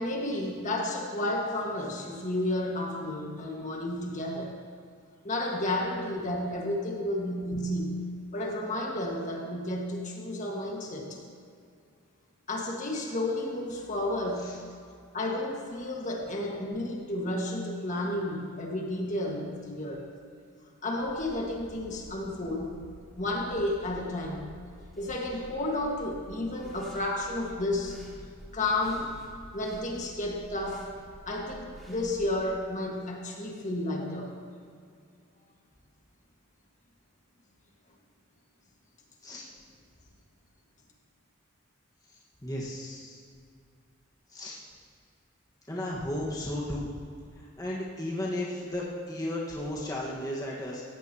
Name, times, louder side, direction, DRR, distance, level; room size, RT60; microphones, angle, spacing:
voice 1, 0.0-4.5 5.2-8.0 8.3-11.2 12.5-14.5 15.1-20.0 20.8-22.7 23.2-24.5 25.0-28.0 28.5-29.1 29.5-30.9 31.3-34.3, left 1 dB, 35° left, -1 dB, 1.7 m, -32 dB
sound 1, 21.0-32.5, equal, ahead, 2.2 m, -50 dB
voice 2, 42.4-43.2 44.3-44.6 45.7-46.9 47.4-50.8, left 1 dB, 15° left, -5 dB, 1.5 m, -34 dB
18.0 x 15.0 x 2.9 m, 2.3 s
head